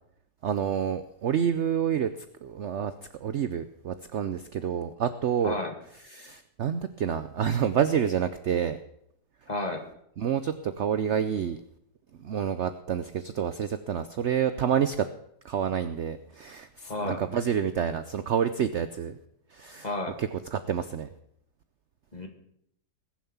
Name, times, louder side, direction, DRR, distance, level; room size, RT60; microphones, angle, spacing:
voice 1, 0.4-2.1 2.4-5.6 6.1-8.8 10.2-11.6 12.2-15.1 15.4-19.2 19.5-19.9 20.2-21.1, right 8 dB, 60° right, 12 dB, 0.8 m, -28 dB
voice 2, 5.4-5.7 9.5-9.8 16.9-17.2 19.8-20.2 22.1-22.3, left 2 dB, 25° left, 3 dB, 2.1 m, -32 dB
20.5 x 7.4 x 7.2 m, 0.74 s
omnidirectional pair, 1.8 m